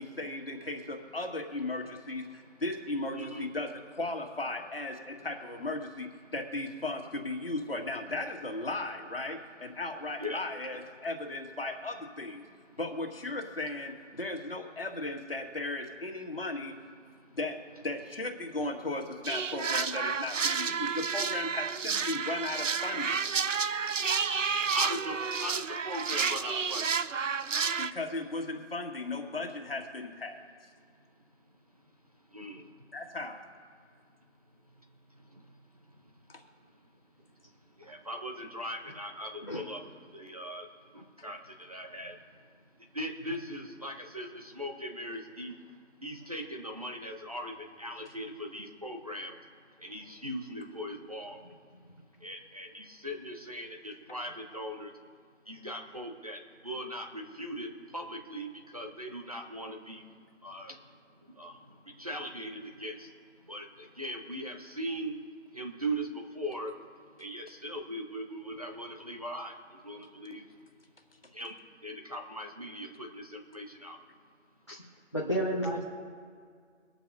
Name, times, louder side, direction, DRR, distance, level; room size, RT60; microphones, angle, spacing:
voice 1, 0.0-12.4 12.8-16.7 17.3-23.2 27.8-30.5 32.9-33.5 36.3-36.4, left 2 dB, 50° left, 2 dB, 1.9 m, -36 dB
voice 2, 3.1-3.5 10.2-10.4 23.5-27.0 32.3-32.8 35.3-35.5 35.9-36.0 37.8-39.8 40.1-40.7 40.9-42.2 42.9-45.7 46.0-49.4 49.8-51.5 52.2-54.9 55.5-60.0 60.4-60.8 61.2-63.1 63.5-65.1 65.5-66.7 67.2-70.5 71.3-71.5 71.8-74.0, equal, 30° right, 2 dB, 1.0 m, -40 dB
sound 1, 19.2-27.9, right 6 dB, 75° right, 0.7 m, -31 dB
voice 3, 75.1-75.9, equal, 20° left, -3 dB, 0.9 m, -31 dB
25.0 x 8.8 x 2.7 m, 2.1 s
figure-of-eight pair, 175°, 38 cm